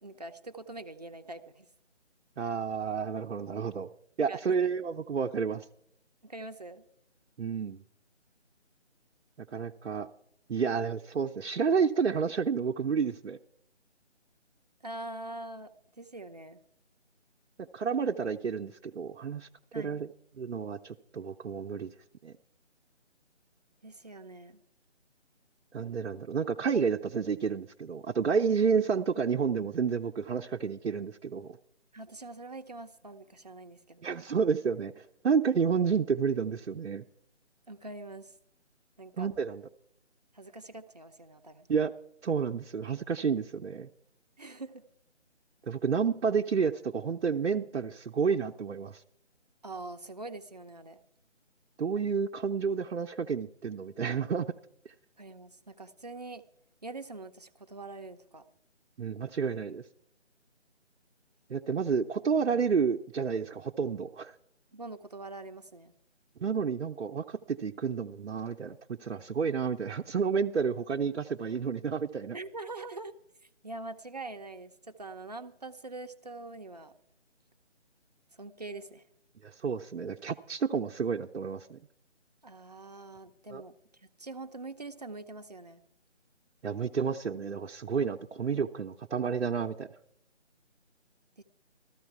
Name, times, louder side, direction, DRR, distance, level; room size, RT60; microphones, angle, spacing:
voice 1, 0.0-1.7 4.3-4.6 6.2-6.8 14.8-15.7 16.0-16.6 19.7-20.0 23.8-24.6 31.9-34.0 37.7-38.3 39.0-39.3 40.3-41.7 44.4-44.8 49.6-51.0 55.2-56.4 56.8-58.4 64.7-65.9 72.3-73.1 73.6-76.9 78.4-79.0 82.4-83.7 84.0-85.8 91.4-91.5, right 2 dB, 35° right, 6 dB, 0.6 m, -43 dB
voice 2, 2.4-3.9 4.2-5.6 7.4-7.8 9.5-10.1 10.5-13.4 17.6-19.5 19.7-20.1 20.4-21.9 22.2-22.3 25.7-31.6 34.0-37.0 39.2-39.6 41.7-41.9 42.2-43.9 45.6-49.0 51.8-54.5 59.0-59.8 61.5-64.3 66.4-72.4 79.4-81.8 83.5-83.6 86.6-89.9, right 6 dB, 70° right, 2 dB, 0.7 m, -30 dB
14.5 x 13.0 x 4.6 m, 0.73 s
figure-of-eight pair, 160°, 35 cm